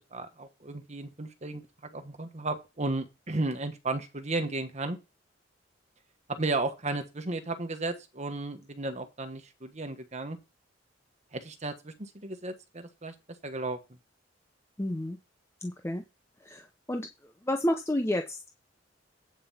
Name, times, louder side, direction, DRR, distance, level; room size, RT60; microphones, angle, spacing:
voice 1, 0.1-5.0 6.3-10.4 11.3-13.1 13.4-13.8, right 2 dB, 35° right, 7 dB, 1.3 m, -34 dB
voice 2, 14.8-15.2 15.6-16.0 16.4-17.1 17.4-18.5, left 1 dB, 15° left, 5 dB, 0.7 m, -30 dB
8.9 x 5.4 x 5.6 m, 0.24 s
head